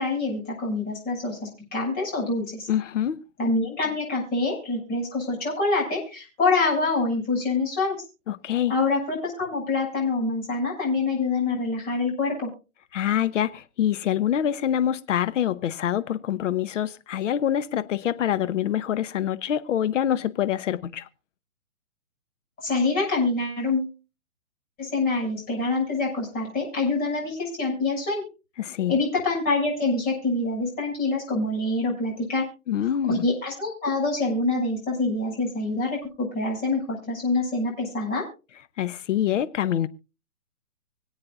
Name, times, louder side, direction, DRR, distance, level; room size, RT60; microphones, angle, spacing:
voice 1, 0.0-2.7 3.4-8.0 8.7-12.5 22.6-23.9 24.8-28.2 28.9-32.4 33.1-38.2, left 3 dB, 20° left, 6.9 m, -26 dB
voice 2, 2.7-3.2 8.3-8.7 12.9-21.1 28.6-28.9 32.7-33.2 38.8-39.9, left 10 dB, 60° left, 1.0 m, -25 dB
25.5 x 8.7 x 2.5 m
hypercardioid pair, 145°, 43 cm